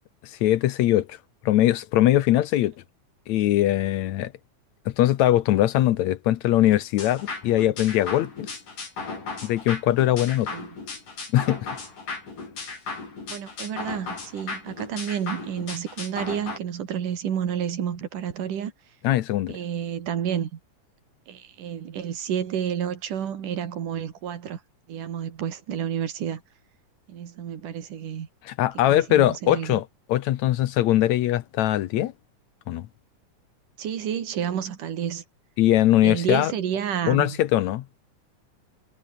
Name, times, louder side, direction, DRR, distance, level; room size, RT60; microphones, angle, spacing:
voice 1, 0.2-1.2 1.5-2.7 3.3-4.3 4.9-8.5 9.4-10.5 11.3-11.6 19.0-19.6 28.5-32.1 32.7-32.9 35.6-36.5 37.1-37.9, left 13 dB, 70° left, 2.0 m, -21 dB
sound 1, 7.0-16.6, left 4 dB, 90° left, 8.6 m, -36 dB
voice 2, 13.3-18.7 19.5-20.6 21.3-24.6 24.9-26.4 27.1-28.3 28.9-29.8 33.8-35.2 36.0-37.4, right 9 dB, 85° right, 3.9 m, -30 dB
omnidirectional pair, 3.6 m